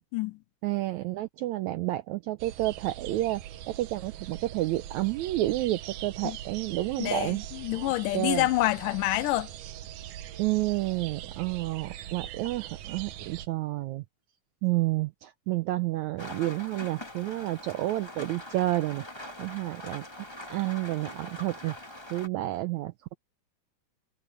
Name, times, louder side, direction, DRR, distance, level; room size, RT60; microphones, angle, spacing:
voice 1, 0.6-3.4 3.7-7.4 7.7-8.5 10.4-14.0 14.6-19.0 19.4-20.0 20.5-21.7 22.1-23.1, right 17 dB, 90° right, 1.7 m, -30 dB
sound 1, 2.4-13.5, right 11 dB, 70° right, 2.2 m, -42 dB
voice 2, 7.0-9.5, left 18 dB, 80° left, 2.1 m, -27 dB
Rain, 16.2-22.3, left 1 dB, 10° left, 1.9 m, -43 dB
omnidirectional pair, 3.9 m